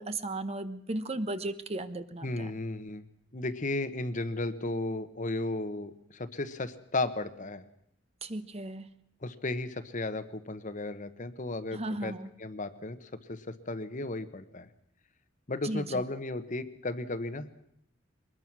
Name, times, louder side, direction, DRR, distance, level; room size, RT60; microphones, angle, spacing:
voice 1, 0.0-2.5 8.2-8.9 11.7-12.3 15.6-16.0, right 2 dB, 35° right, 11 dB, 1.0 m, -35 dB
voice 2, 2.2-3.0 3.3-7.6 9.2-12.1 12.4-14.7 15.5-17.5, left 2 dB, 40° left, 11 dB, 1.1 m, -34 dB
22.5 x 20.0 x 6.1 m, 0.74 s
head